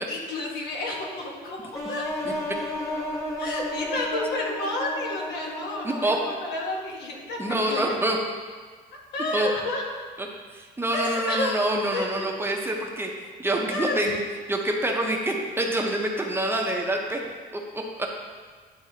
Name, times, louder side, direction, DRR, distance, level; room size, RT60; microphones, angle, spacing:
voice 1, 0.1-2.0 3.4-7.9 9.1-9.8 10.9-11.6 11.9-12.3 13.7-14.2, left 2 dB, 75° left, -1 dB, 1.4 m, -31 dB
sound 1, 1.7-6.6, left 1 dB, 15° left, 1.3 m, -32 dB
voice 2, 5.8-6.2 7.4-8.2 9.3-9.5 10.2-10.3 10.5-13.1 13.4-14.2 14.5-17.2 17.7-18.1, right 1 dB, 15° right, 0 dB, 0.8 m, -26 dB
10.5 x 3.9 x 2.8 m, 1.5 s
cardioid pair, 110°, 17 cm